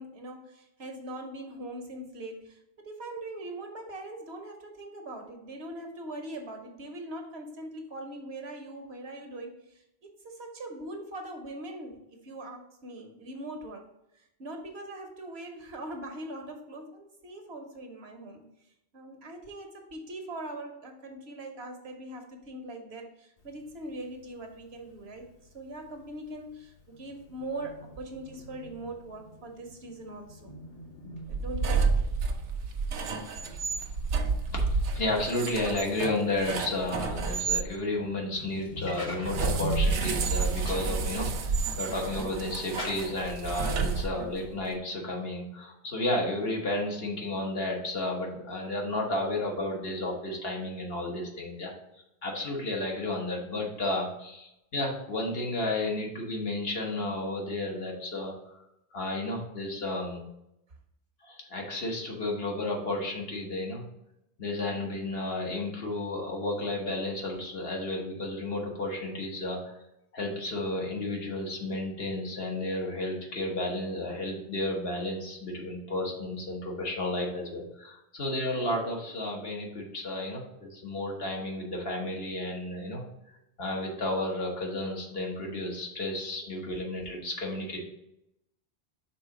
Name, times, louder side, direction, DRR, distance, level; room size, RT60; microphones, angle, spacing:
voice 1, 0.0-13.8 14.1-18.4 18.9-25.3 25.5-30.5 31.3-32.1, right 1 dB, 65° right, 3 dB, 1.2 m, -41 dB
Thunder, 23.4-42.7, left 1 dB, 35° left, 1.0 m, -45 dB
sound 1, 31.2-37.7 39.2-44.5, right 4 dB, 85° right, 1.0 m, -30 dB
voice 2, 34.9-51.7 52.2-58.6 58.9-60.2 61.2-63.8 64.4-69.7 70.1-83.0 83.6-87.8, left 2 dB, 60° left, 0 dB, 1.4 m, -32 dB
sound 2, 38.3-39.4 39.9-40.3 40.6-40.8 41.4-42.2 42.7-43.2, left 1 dB, 75° left, 3.0 m, -41 dB
5.5 x 3.7 x 4.8 m, 0.83 s
omnidirectional pair, 1.2 m